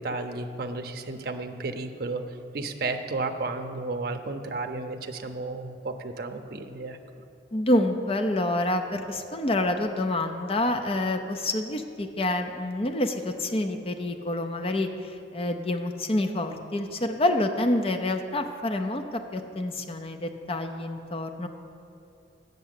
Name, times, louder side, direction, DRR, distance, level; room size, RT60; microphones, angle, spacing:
voice 1, 0.0-2.2 2.5-7.0, right 3 dB, 55° right, 6 dB, 0.6 m, -33 dB
voice 2, 7.5-19.0 19.3-21.5, left 1 dB, 30° left, 6 dB, 0.5 m, -27 dB
7.5 x 6.8 x 8.1 m, 2.7 s
head